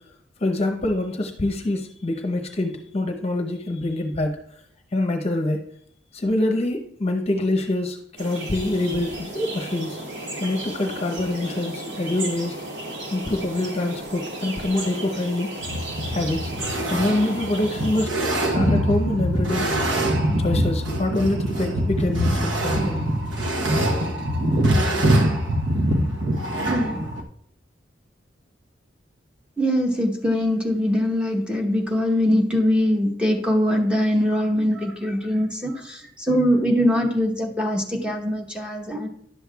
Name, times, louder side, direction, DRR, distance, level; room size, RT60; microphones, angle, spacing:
voice 1, 0.4-4.3 4.9-5.6 6.1-10.0 10.4-12.5 13.1-15.5 16.1-16.5 16.9-18.1 18.5-19.7 20.4-23.0, left 1 dB, 35° left, 5 dB, 0.8 m, -25 dB
sound 1, 8.2-18.1, right 1 dB, 70° right, 1.9 m, -34 dB
sound 2, 15.6-27.2, right 1 dB, 90° right, 1.0 m, -23 dB
voice 2, 26.6-27.0 29.6-39.1, equal, 5° right, 1 dB, 1.0 m, -22 dB
11.0 x 7.7 x 2.3 m, 0.68 s
head